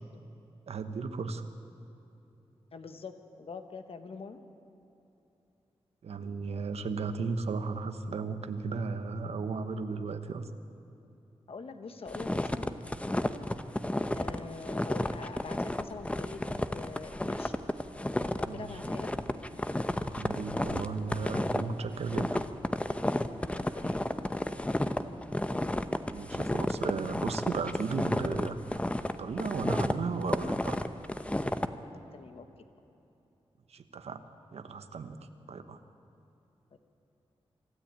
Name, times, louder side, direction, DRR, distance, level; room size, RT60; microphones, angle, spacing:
voice 1, 0.7-1.4 6.0-10.5 18.4-18.8 20.1-22.4 26.1-28.8 29.2-30.8 33.7-34.2 34.5-35.2 35.5-35.8, right 4 dB, 85° right, 9 dB, 1.1 m, -35 dB
voice 2, 2.7-4.4 11.5-12.7 14.1-16.4 16.7-17.5 18.4-19.1 19.3-19.6 23.5-24.4 32.1-32.4, left 4 dB, 65° left, 7 dB, 1.3 m, -44 dB
sound 1, 12.1-31.7, left 1 dB, 10° left, 0.8 m, -32 dB
25.0 x 13.5 x 8.9 m, 3.0 s
wide cardioid pair, 95°, 10 cm